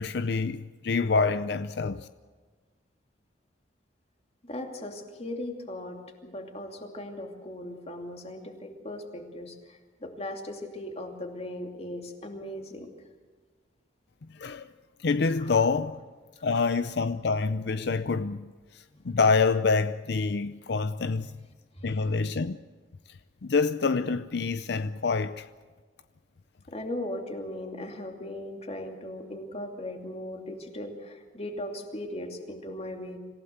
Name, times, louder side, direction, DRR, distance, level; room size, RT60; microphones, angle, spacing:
voice 1, 0.0-2.1 14.3-14.7 15.0-15.9 16.4-21.3 21.8-22.6 23.4-25.5, left 4 dB, 65° left, 0.6 m, -26 dB
voice 2, 4.4-12.9 15.4-15.6 16.4-16.5 18.9-19.1 21.1-21.3 21.8-22.2 26.7-33.2, left 1 dB, 35° left, 2.7 m, -38 dB
26.0 x 16.0 x 8.0 m
head